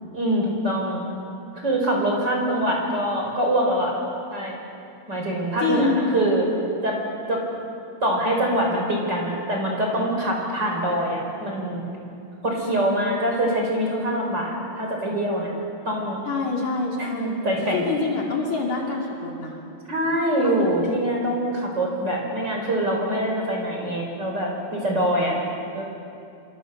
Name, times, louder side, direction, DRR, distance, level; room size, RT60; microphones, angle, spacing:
voice 1, 0.1-1.1 1.6-3.9 4.3-4.6 5.1-6.5 6.8-7.0 7.3-7.4 8.0-11.8 12.4-15.5 15.8-16.2 17.1-17.8 19.9-25.4 25.7-25.8, right 1 dB, 25° right, -1 dB, 4.9 m, -24 dB
voice 2, 2.5-2.9 5.6-6.2 16.3-17.4 17.7-19.6 20.4-20.8, left 4 dB, 50° left, -2 dB, 3.9 m, -26 dB
28.0 x 25.5 x 6.8 m, 2.6 s
omnidirectional pair, 4.6 m